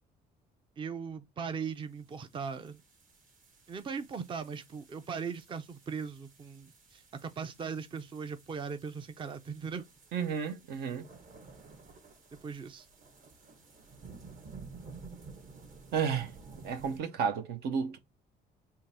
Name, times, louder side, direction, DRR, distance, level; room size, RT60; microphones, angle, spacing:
voice 1, 0.8-2.8 3.7-9.8 12.4-12.9, right 6 dB, 30° right, 0.5 m, -39 dB
sound 1, 1.8-17.0, right 4 dB, 50° right, 1.5 m, -53 dB
voice 2, 10.1-11.0 15.9-16.3 16.6-18.0, right 7 dB, 70° right, 0.9 m, -32 dB
3.8 x 2.6 x 4.2 m
cardioid pair, 110°, 17 cm